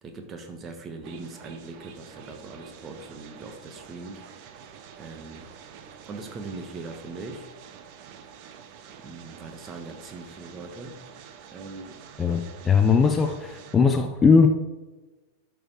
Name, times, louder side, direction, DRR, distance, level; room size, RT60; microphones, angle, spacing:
voice 1, 0.0-4.7 5.0-5.4 6.0-7.5 9.0-11.0 11.5-12.0, right 3 dB, 25° right, 5 dB, 1.4 m, -41 dB
sound 1, 1.0-13.8, right 7 dB, 45° right, 0.9 m, -47 dB
voice 2, 12.2-14.5, left 5 dB, 15° left, 6 dB, 0.6 m, -19 dB
12.0 x 4.7 x 4.8 m, 1.2 s
figure-of-eight pair, 90°, 0 cm